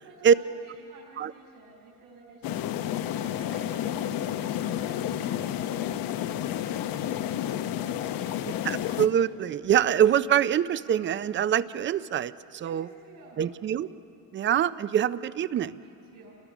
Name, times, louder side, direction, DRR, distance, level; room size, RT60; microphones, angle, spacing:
voice 1, 0.0-8.3 12.6-13.5 15.8-16.4, right 3 dB, 65° right, -6 dB, 5.9 m, -53 dB
sound 1, 2.4-9.1, left 11 dB, 75° left, 0.9 m, -30 dB
voice 2, 8.5-12.9 13.4-13.9 14.3-15.8, right 9 dB, 35° right, 16 dB, 0.4 m, -24 dB
29.5 x 21.0 x 6.1 m, 2.7 s
cardioid pair, 150°, 34 cm